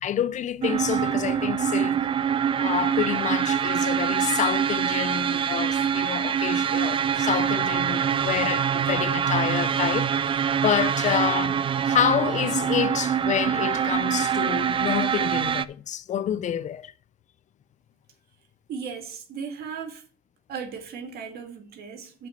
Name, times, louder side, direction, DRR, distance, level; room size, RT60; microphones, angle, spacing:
voice 1, 0.0-2.1 2.6-16.9, left 10 dB, 45° left, 0.5 m, -28 dB
sound 1, 0.6-15.7, right 8 dB, 30° right, 0.4 m, -24 dB
voice 2, 18.7-20.0 20.5-22.3, right 6 dB, 65° right, 2.0 m, -36 dB
6.1 x 5.8 x 6.5 m
cardioid pair, 110°, 17 cm